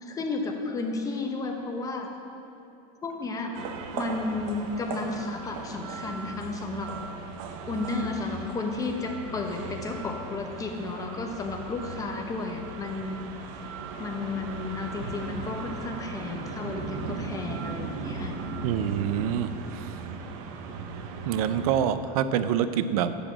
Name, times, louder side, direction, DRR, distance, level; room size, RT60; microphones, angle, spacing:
voice 1, 0.0-2.1 3.0-6.9 7.7-13.2 14.0-18.3, left 3 dB, 20° left, 3 dB, 1.0 m, -33 dB
sound 1, 3.5-21.9, right 4 dB, 65° right, 1.0 m, -37 dB
voice 2, 18.6-19.5 21.3-23.1, right 9 dB, 90° right, 12 dB, 0.6 m, -26 dB
11.5 x 5.1 x 7.4 m, 2.8 s
supercardioid pair, 155°, 18 cm